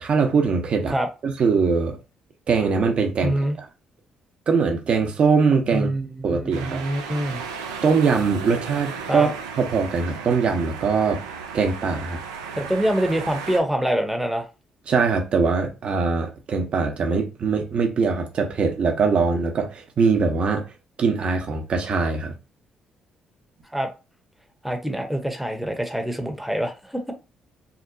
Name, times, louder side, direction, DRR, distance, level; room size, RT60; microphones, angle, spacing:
voice 1, 0.0-0.9 1.2-2.0 2.5-3.7 4.5-5.9 6.2-6.8 7.8-9.3 9.6-11.2 11.5-12.2 14.9-20.6 21.0-22.4, right 5 dB, 55° right, 0.7 m, -22 dB
voice 2, 3.2-3.5 5.7-7.4 9.1-9.3 12.6-14.5 23.7-23.9 24.6-27.1, right 1 dB, 5° right, 0.7 m, -25 dB
sound 1, 6.5-13.6, right 5 dB, 85° right, 0.4 m, -35 dB
2.8 x 2.1 x 2.6 m
hypercardioid pair, 45°, 2 cm